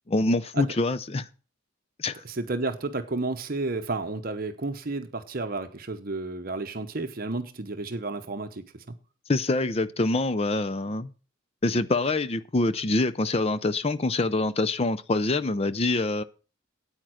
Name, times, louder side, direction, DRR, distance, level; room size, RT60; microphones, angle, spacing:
voice 1, 0.1-1.3 2.0-2.2 9.3-11.1 11.6-16.2, left 2 dB, 30° left, 0.6 m, -25 dB
voice 2, 2.2-8.9, right 3 dB, 50° right, 0.9 m, -32 dB
9.1 x 8.8 x 6.2 m
head